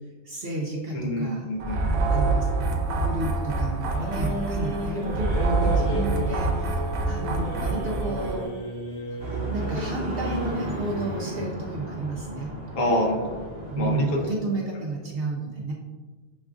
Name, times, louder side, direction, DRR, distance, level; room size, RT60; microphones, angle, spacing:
voice 1, 0.2-1.4 2.1-2.5 2.9-8.5 9.5-12.5 13.7-15.7, right 2 dB, 60° right, -2 dB, 0.6 m, -32 dB
voice 2, 0.9-2.3 12.7-13.4 13.8-14.2, left 1 dB, 75° left, -1 dB, 1.2 m, -27 dB
sound 1, 1.6-8.5, right 3 dB, 85° right, 1.0 m, -26 dB
sound 2, 3.9-11.5, equal, 55° left, 1.1 m, -34 dB
sound 3, 9.2-14.3, right 1 dB, 30° right, 0.8 m, -34 dB
6.2 x 2.4 x 2.4 m, 1.4 s
omnidirectional pair, 1.4 m